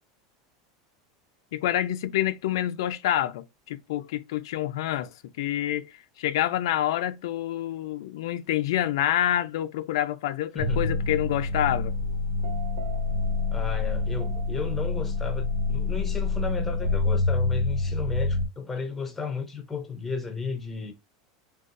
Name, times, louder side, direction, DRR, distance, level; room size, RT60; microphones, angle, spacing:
voice 1, 1.5-11.9, left 12 dB, 80° left, 0.4 m, -27 dB
voice 2, 10.5-10.9 13.5-20.9, left 5 dB, 10° left, 0.6 m, -34 dB
sound 1, 10.6-18.5, left 3 dB, 75° right, 0.9 m, -27 dB
3.8 x 2.3 x 2.5 m
supercardioid pair, 155°, 2 cm